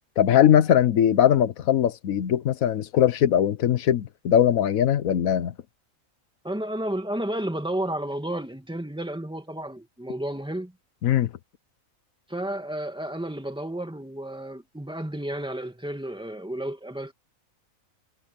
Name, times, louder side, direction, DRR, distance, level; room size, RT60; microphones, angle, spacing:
voice 1, 0.2-5.5 11.0-11.3, left 10 dB, 85° left, 1.3 m, -20 dB
voice 2, 6.4-10.7 12.3-17.1, right 1 dB, 5° right, 2.0 m, -32 dB
omnidirectional pair, 1.4 m